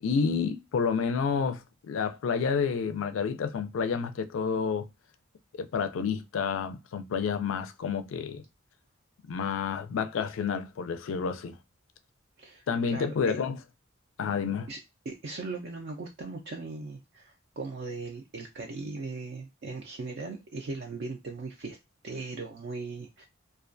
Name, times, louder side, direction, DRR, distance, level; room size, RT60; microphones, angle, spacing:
voice 1, 0.0-4.9 5.5-8.4 9.3-11.6 12.7-13.6 14.2-14.7, left 6 dB, 75° left, 0.4 m, -29 dB
voice 2, 12.4-13.4 14.7-14.8 15.1-21.8 22.0-23.2, right 3 dB, 55° right, 0.4 m, -38 dB
2.3 x 2.2 x 2.5 m
head